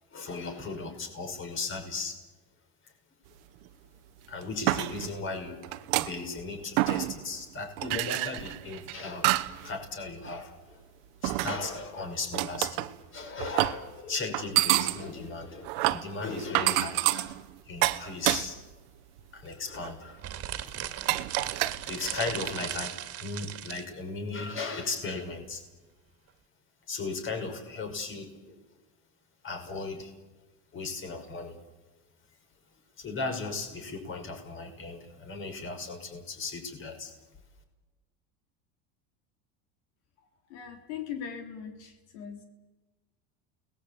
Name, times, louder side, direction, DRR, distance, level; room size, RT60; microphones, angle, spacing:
voice 1, 0.1-2.2 2.8-2.9 4.3-10.8 11.2-17.4 17.7-18.6 19.3-20.2 21.1-21.5 21.9-25.6 26.9-28.6 29.4-30.1 30.7-31.6 33.0-37.1, left 3 dB, 35° left, 5 dB, 5.6 m, -37 dB
sound 1, 3.6-3.7 4.3-5.2 5.6-6.4 6.8-7.4 7.8-9.7 10.1-10.4 11.2-11.9 12.3-12.9 13.4-13.9 14.3-18.8 19.2-19.4 19.8-19.9 20.7-20.8 21.1-22.4, right 18 dB, 80° right, 1.3 m, -29 dB
sound 2, 20.2-23.9, right 11 dB, 45° right, 2.2 m, -37 dB
voice 2, 40.2-42.4, left 8 dB, 90° left, 4 dB, 3.3 m, -40 dB
30.0 x 20.0 x 8.5 m, 1.2 s
supercardioid pair, 120°, 33 cm